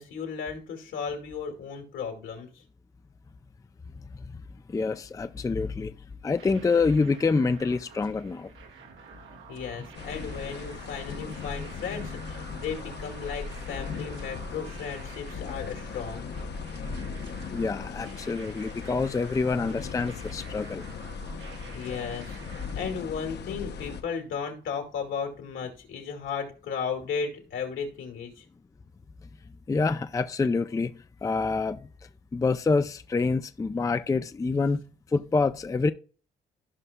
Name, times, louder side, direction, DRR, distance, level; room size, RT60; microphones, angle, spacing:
voice 1, 0.0-2.5 9.5-16.3 21.7-28.5, left 6 dB, 75° left, 2.3 m, -35 dB
voice 2, 4.7-5.9 6.2-8.5 17.5-20.8 29.7-31.8 32.3-34.8 35.1-35.9, left 4 dB, 15° left, 0.4 m, -26 dB
sound 1, 6.4-22.7, right 7 dB, 80° right, 1.2 m, -49 dB
sound 2, 9.9-24.0, left 5 dB, 60° left, 0.9 m, -38 dB
15.0 x 5.4 x 2.2 m
cardioid pair, 90°, 20 cm